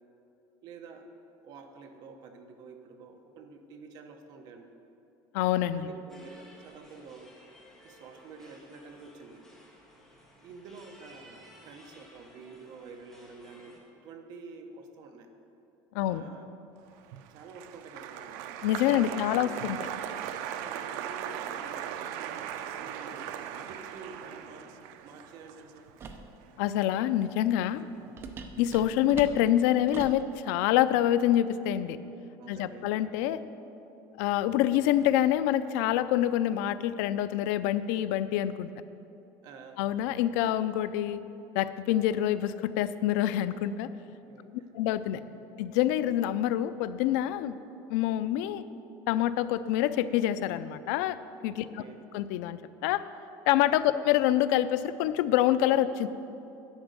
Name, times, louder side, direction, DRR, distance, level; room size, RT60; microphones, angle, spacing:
voice 1, 0.6-1.1 1.4-4.7 5.7-7.3 7.8-9.4 10.4-15.3 16.0-16.5 17.3-18.4 18.9-19.6 20.5-22.0 22.7-24.7 25.0-25.9 32.4-33.0 39.4-40.2 44.3-44.7 45.2-45.4 51.6-52.0 53.9-54.0, right 4 dB, 45° right, 5 dB, 0.9 m, -49 dB
voice 2, 5.3-5.9 15.9-16.2 18.6-19.8 26.6-27.9 28.6-32.0 32.5-33.4 34.2-38.7 39.8-41.2 41.5-43.9 44.7-45.2 45.6-47.6 47.9-48.6 49.1-51.2 51.4-51.6 52.1-53.0 53.5-56.1, left 12 dB, 80° left, 14 dB, 0.4 m, -26 dB
sound 1, 6.1-13.8, left 1 dB, 5° left, 1.4 m, -56 dB
Applause, 17.0-27.4 27.6-28.2, right 9 dB, 75° right, 0.5 m, -39 dB
sound 2, 26.0-26.3 28.2-30.3, right 5 dB, 25° right, 0.6 m, -42 dB
10.5 x 5.2 x 8.1 m, 2.8 s
cardioid pair, 170°, 9 cm